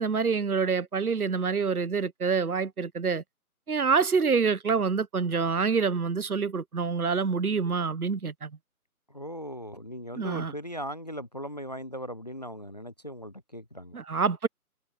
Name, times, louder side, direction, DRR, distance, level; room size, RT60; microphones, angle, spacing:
voice 1, 0.0-3.2 3.7-8.5 10.2-10.5 13.9-14.5, right 5 dB, 75° right, 1.3 m, -26 dB
voice 2, 9.1-14.0, equal, 30° left, 0.5 m, -38 dB
figure-of-eight pair, 150°, 44 cm